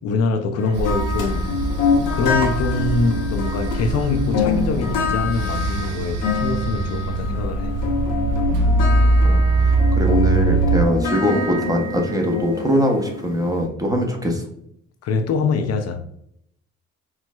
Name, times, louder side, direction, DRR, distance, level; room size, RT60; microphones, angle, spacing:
voice 1, 0.0-1.6 2.1-7.7 15.0-16.1, left 4 dB, 55° left, 0.4 m, -24 dB
sound 1, 0.6-13.6, left 4 dB, 85° left, 0.8 m, -26 dB
sound 2, 0.7-10.9, right 2 dB, 85° right, 0.5 m, -22 dB
voice 2, 8.5-8.9 9.2-14.4, equal, 10° right, 0.6 m, -22 dB
4.4 x 2.1 x 2.2 m
cardioid pair, 90°, 30 cm